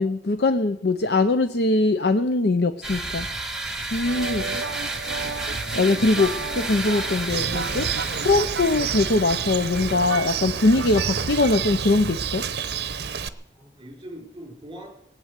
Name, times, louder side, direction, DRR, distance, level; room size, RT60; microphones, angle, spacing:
voice 1, 0.0-3.3 3.9-4.6 5.7-7.9 8.2-12.4, left 2 dB, 60° left, 10 dB, 0.6 m, -22 dB
sound 1, 2.8-10.0, right 2 dB, 5° right, 1.7 m, -31 dB
sound 2, 4.1-11.9, right 5 dB, 80° right, 0.5 m, -35 dB
Bird, 7.3-13.3, right 7 dB, 60° right, 0.8 m, -29 dB
voice 2, 13.5-14.9, equal, 25° right, 1 dB, 4.9 m, -42 dB
19.0 x 8.9 x 8.1 m, 0.92 s
head